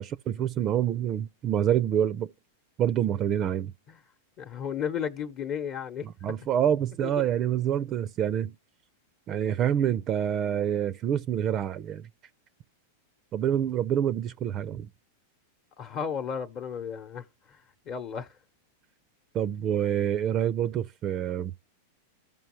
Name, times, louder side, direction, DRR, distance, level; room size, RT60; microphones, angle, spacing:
voice 1, 0.0-2.3 2.8-3.7 6.0-8.5 9.3-12.1 13.3-14.9 19.3-21.5, right 10 dB, 35° right, 0.4 m, -27 dB
voice 2, 4.4-6.1 7.0-7.1 15.8-18.4, left 7 dB, 40° left, 0.9 m, -34 dB
15.0 x 5.3 x 3.0 m
hypercardioid pair, 105°, 0 cm